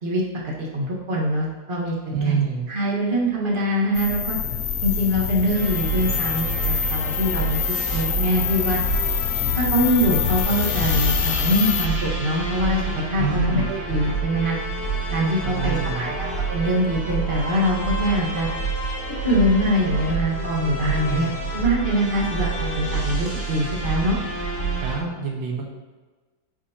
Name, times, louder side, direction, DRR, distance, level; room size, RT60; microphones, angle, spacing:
voice 1, 0.0-1.9 2.2-2.4 2.7-4.4 4.8-7.6 7.9-8.8 9.6-14.6 15.1-18.5 19.2-24.2, equal, 30° right, -4 dB, 1.8 m, -23 dB
voice 2, 2.1-2.7 13.2-13.7 15.4-16.1 20.8-21.3 24.8-25.6, right 4 dB, 90° right, -2 dB, 2.0 m, -26 dB
sound 1, 3.9-11.9, left 10 dB, 75° left, 0.7 m, -25 dB
sound 2, 5.5-25.0, right 3 dB, 45° left, 3.2 m, -28 dB
10.5 x 7.0 x 3.0 m, 1.3 s
omnidirectional pair, 2.0 m